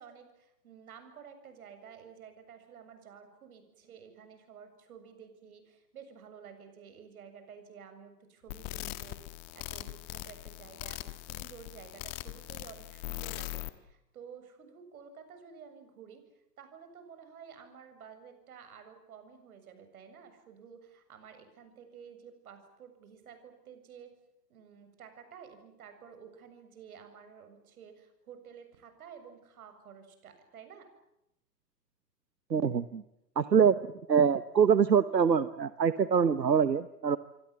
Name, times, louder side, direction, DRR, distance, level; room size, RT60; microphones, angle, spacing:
voice 1, 0.0-9.2 9.5-16.2 16.6-24.1 24.5-30.9, right 7 dB, 60° right, 8 dB, 7.5 m, -52 dB
sound 1, 8.5-13.7, left 20 dB, 30° left, 1.6 m, -41 dB
voice 2, 32.5-33.0 33.4-33.8 34.1-37.2, right 7 dB, 85° right, 14 dB, 1.2 m, -24 dB
27.0 x 25.0 x 7.5 m, 0.84 s
figure-of-eight pair, 115°, 49 cm